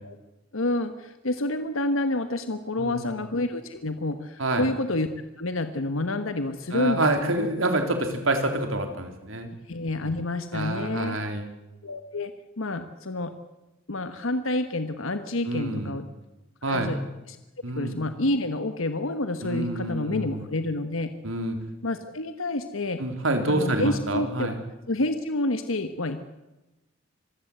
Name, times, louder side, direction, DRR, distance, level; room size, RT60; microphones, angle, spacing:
voice 1, 0.5-5.1 5.4-7.5 9.7-11.2 11.8-13.3 13.9-16.0 16.6-17.0 17.3-17.4 17.7-21.1 21.8-23.0 23.5-24.5 24.9-26.2, left 2 dB, 85° left, 9 dB, 1.4 m, -28 dB
voice 2, 2.8-3.2 4.4-4.7 6.7-9.5 10.5-11.5 15.5-15.9 16.6-16.9 17.6-18.0 19.4-20.5 21.2-21.6 23.0-24.6, right 2 dB, 75° right, 6 dB, 3.8 m, -27 dB
25.5 x 16.0 x 8.0 m, 1.0 s
head